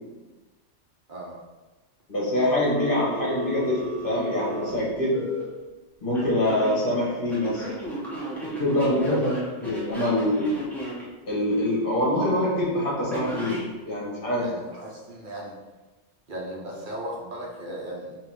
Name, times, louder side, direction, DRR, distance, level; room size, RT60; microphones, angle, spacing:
voice 1, 2.1-5.2 6.0-7.6 8.4-10.5 11.3-13.6 13.9-14.5, left 1 dB, 50° left, -6 dB, 1.7 m, -25 dB
Telephone, 2.7-5.4 6.1-6.8 7.3-11.0 13.1-13.7, right 1 dB, ahead, 1.0 m, -34 dB
voice 2, 14.4-15.5 16.3-18.2, right 1 dB, 50° right, -3 dB, 1.0 m, -36 dB
5.2 x 2.6 x 3.7 m, 1.2 s
omnidirectional pair, 1.2 m